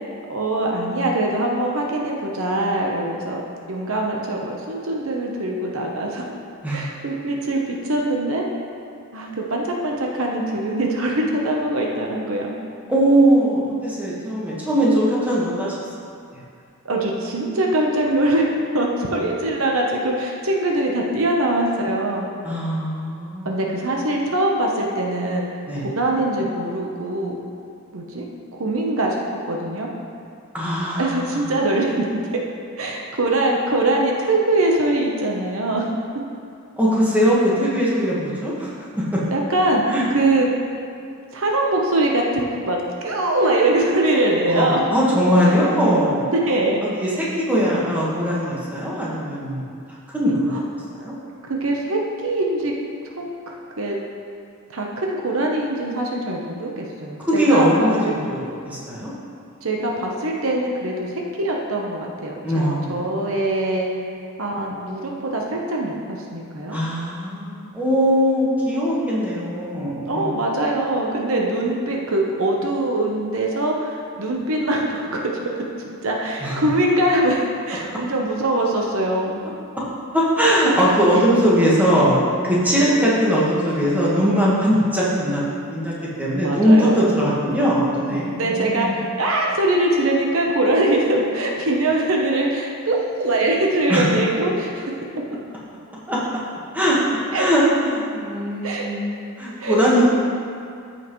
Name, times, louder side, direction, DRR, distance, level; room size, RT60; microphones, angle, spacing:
voice 1, 0.3-3.4 3.7-6.3 6.7-8.4 9.1-12.5 16.8-22.3 23.4-25.6 26.0-27.4 27.9-28.3 28.5-29.9 31.0-32.1 32.3-32.4 32.8-35.9 39.3-39.8 40.1-40.5 41.3-44.9 46.3-46.8 50.5-50.6 51.5-52.7 53.2-54.0 54.7-58.1 59.6-63.9 64.4-66.8 70.0-75.2 75.8-79.4 86.4-87.0 88.3-94.8 97.3-97.5 98.6-98.9 99.6-100.1, right 1 dB, 70° right, -1 dB, 0.9 m, -22 dB
voice 2, 12.9-15.7 22.4-23.6 25.7-25.9 30.5-31.4 36.8-39.2 39.9-40.1 44.5-46.3 46.8-49.6 50.1-50.6 51.0-51.1 57.3-59.1 62.4-63.0 66.7-70.3 76.4-76.6 80.1-82.2 82.4-85.4 85.7-88.9 93.9-94.1 96.1-96.2 96.7-97.0 97.3-100.1, equal, 5° right, -7 dB, 1.5 m, -20 dB
14.0 x 5.6 x 3.1 m, 2.4 s
head